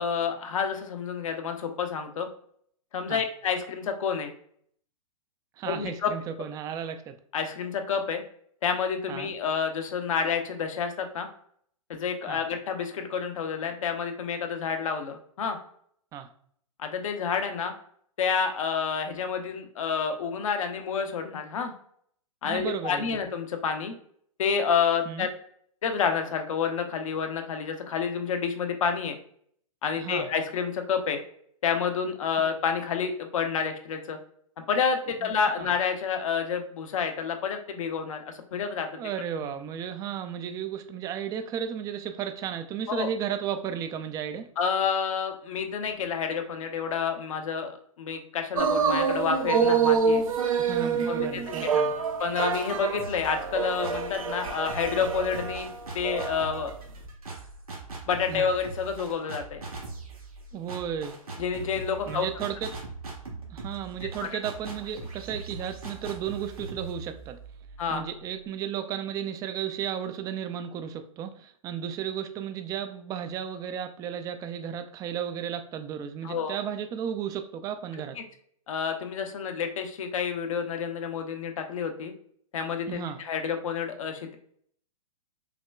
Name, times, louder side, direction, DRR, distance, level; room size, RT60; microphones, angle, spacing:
voice 1, 0.0-2.3 2.9-4.3 5.7-6.1 7.3-8.2 8.6-11.3 11.9-15.6 16.8-17.7 18.2-21.7 22.4-23.9 24.4-25.3 25.8-29.1 29.8-31.2 31.6-34.2 34.6-39.0 42.9-43.1 44.6-50.2 50.9-51.8 52.2-55.7 55.9-56.7 58.1-59.6 61.4-62.3 67.8-68.0 76.2-76.6 78.7-82.1 82.5-84.4, left 6 dB, 65° left, 6 dB, 0.8 m, -29 dB
voice 2, 5.6-7.2 9.1-9.3 12.3-12.4 16.1-16.3 22.4-23.2 25.1-25.3 30.0-30.3 35.2-35.3 35.6-35.7 38.9-44.5 50.6-51.9 58.3-58.5 60.5-61.2 62.1-62.7 63.5-67.4 67.9-78.2 82.9-83.2, right 8 dB, 20° right, 9 dB, 0.3 m, -34 dB
sound 1, 48.6-56.7 57.0-57.1, right 5 dB, 75° right, 0.6 m, -27 dB
sound 2, 53.0-54.2 54.7-68.4, right 3 dB, 90° right, 1.3 m, -41 dB
5.8 x 2.2 x 2.3 m, 0.63 s
hypercardioid pair, 120°, 18 cm